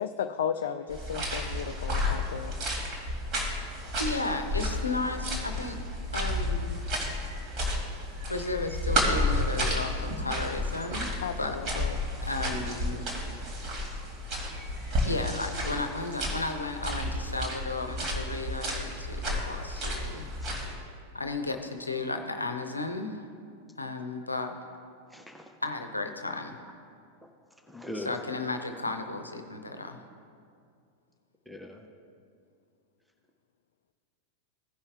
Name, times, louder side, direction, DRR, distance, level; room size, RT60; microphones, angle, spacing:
voice 1, 0.0-2.6 11.2-12.0, left 8 dB, 60° left, 7 dB, 0.3 m, -34 dB
sound 1, 0.9-20.7, left 1 dB, 35° right, 2.1 m, -32 dB
voice 2, 4.0-5.8 6.1-6.8 8.3-11.1 11.4-11.6 12.2-13.1 15.0-20.3 21.1-23.2 23.8-24.6 25.6-26.6 27.9-30.0, left 2 dB, 80° left, 6 dB, 0.7 m, -34 dB
voice 3, 25.1-25.6 26.6-26.7 27.7-28.3 31.5-31.9, left 1 dB, ahead, 4 dB, 0.7 m, -41 dB
16.0 x 5.5 x 3.4 m, 2.3 s
figure-of-eight pair, 90°, 0 cm